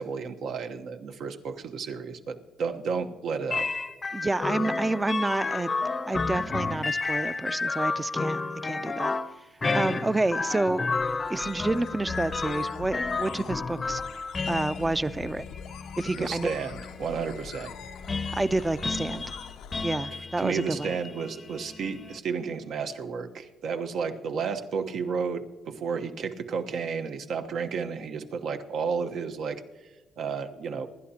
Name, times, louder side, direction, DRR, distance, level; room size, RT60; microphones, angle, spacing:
voice 1, 0.0-3.7 9.6-9.8 16.1-17.7 20.4-29.6 30.2-30.9, right 5 dB, 70° right, 1.1 m, -32 dB
sound 1, 3.5-22.2, left 4 dB, 35° left, 0.7 m, -32 dB
voice 2, 4.1-5.7 6.1-9.2 9.7-10.9 11.3-14.0 14.5-15.5 16.0-16.5 18.3-19.2 19.8-20.9, right 2 dB, 15° right, 0.5 m, -29 dB
sound 2, 10.6-19.9, left 8 dB, 90° left, 0.7 m, -45 dB
26.5 x 12.0 x 2.9 m
cardioid pair, 90°, 0 cm